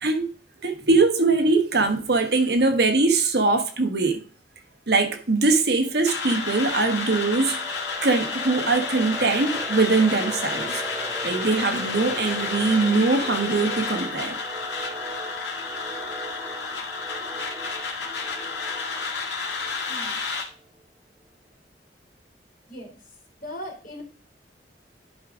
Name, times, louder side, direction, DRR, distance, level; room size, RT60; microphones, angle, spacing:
voice 1, 0.6-4.2 4.9-7.6 8.0-10.8 11.2-14.4, right 3 dB, 65° right, 1.3 m, -22 dB
sound 1, 6.0-20.4, left 4 dB, 75° left, 1.8 m, -31 dB
sound 2, 6.0-20.5, right 2 dB, 10° right, 1.1 m, -39 dB
voice 2, 19.9-20.2 22.7-23.0 23.4-24.0, equal, 50° left, 3.0 m, -38 dB
11.0 x 5.1 x 3.7 m
head